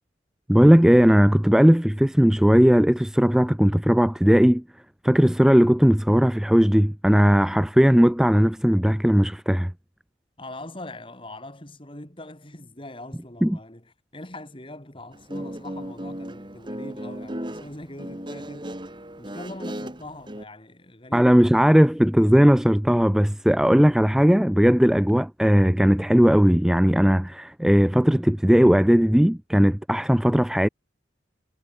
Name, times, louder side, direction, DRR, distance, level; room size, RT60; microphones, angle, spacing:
voice 1, 0.5-4.6 5.0-9.7 13.4-13.6 21.1-30.7, equal, 5° right, 0.3 m, -18 dB
voice 2, 10.4-18.8 19.2-21.6, left 1 dB, 25° left, 2.9 m, -42 dB
Guitar, 15.1-20.4, right 1 dB, 25° right, 2.7 m, -36 dB
head